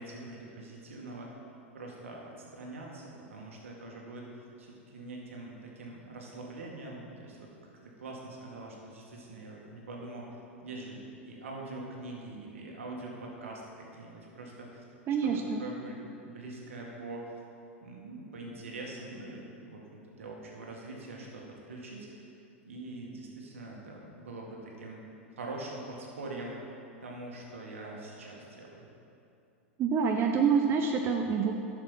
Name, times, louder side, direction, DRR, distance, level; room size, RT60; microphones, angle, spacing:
voice 1, 0.0-1.3 1.7-7.5 7.8-10.3 10.6-14.8 15.2-15.3 15.6-17.3 17.8-22.3 22.6-25.0 25.4-26.6 27.0-28.9, right 2 dB, 75° right, -1 dB, 2.1 m, -43 dB
voice 2, 15.1-15.6 29.8-31.5, right 6 dB, 35° right, 3 dB, 0.7 m, -26 dB
10.5 x 6.7 x 5.7 m, 2.6 s
hypercardioid pair, 95°, 7 cm